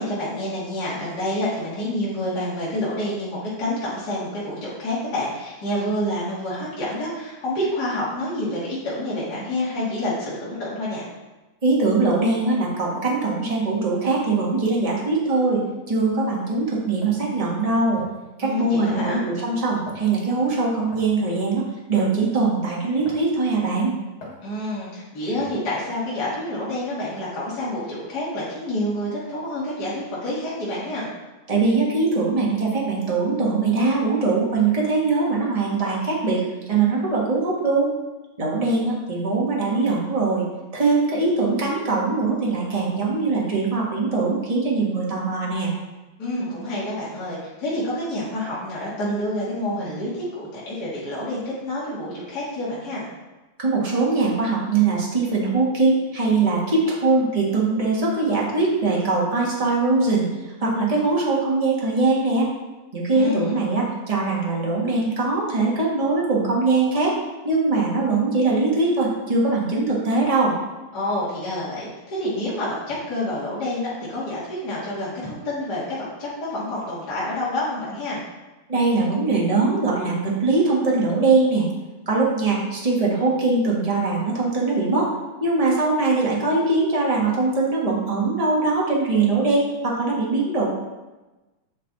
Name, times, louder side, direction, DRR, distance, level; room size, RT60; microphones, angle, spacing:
voice 1, 0.0-11.1 18.4-19.2 24.4-31.1 46.2-53.1 63.1-63.7 70.9-78.2, left 1 dB, 35° left, -8 dB, 2.3 m, -28 dB
voice 2, 11.6-15.6 15.9-18.0 18.4-23.9 31.5-36.4 36.7-37.9 38.4-40.4 40.7-45.7 53.6-60.2 60.6-62.5 62.9-67.2 67.4-70.5 78.7-81.7 82.1-85.1 85.4-90.7, right 3 dB, 25° right, -4 dB, 0.8 m, -21 dB
sound 1, 17.0-17.2 18.0-18.3 18.9-19.2 19.9-20.1 20.9-21.2 22.0-22.2 23.1-23.4 24.2-24.4 25.4-25.7, left 2 dB, 55° left, 3.2 m, -41 dB
8.4 x 5.3 x 4.1 m, 1.1 s
omnidirectional pair, 3.4 m